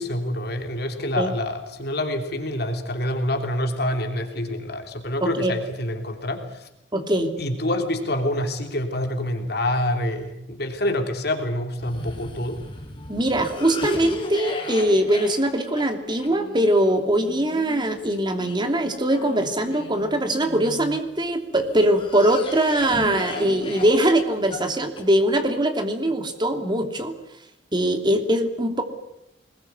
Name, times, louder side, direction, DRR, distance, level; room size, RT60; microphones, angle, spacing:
voice 1, 0.0-6.7 7.4-12.6, left 1 dB, 60° left, 4 dB, 3.1 m, -27 dB
voice 2, 5.2-5.5 6.9-7.3 13.1-27.2 27.7-28.8, right 1 dB, 25° right, 5 dB, 2.9 m, -22 dB
Cough, 11.8-21.0 21.6-25.5, left 1 dB, 30° left, 4.6 m, -36 dB
25.0 x 21.0 x 9.6 m, 0.86 s
head